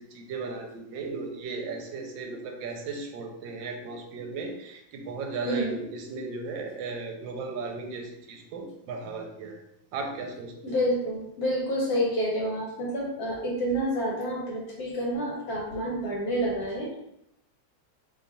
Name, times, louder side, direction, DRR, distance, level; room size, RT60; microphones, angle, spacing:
voice 1, 0.0-9.6 9.9-10.8, right 4 dB, 80° right, 3 dB, 1.3 m, -36 dB
voice 2, 5.4-5.8 10.6-16.9, equal, 60° left, -3 dB, 1.2 m, -28 dB
3.1 x 2.3 x 3.9 m, 0.81 s
omnidirectional pair, 2.0 m